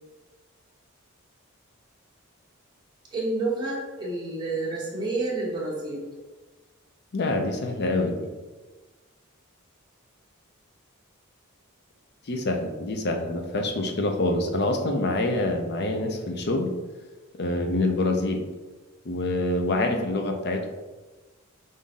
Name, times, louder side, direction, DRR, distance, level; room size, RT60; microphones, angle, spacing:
voice 1, 3.1-6.1 19.7-20.1, right 2 dB, 20° right, -5 dB, 1.2 m, -30 dB
voice 2, 7.1-8.3 12.3-16.7 17.4-18.4 19.1-20.7, left 2 dB, 50° left, 4 dB, 0.6 m, -26 dB
5.4 x 2.6 x 3.6 m, 1.2 s
head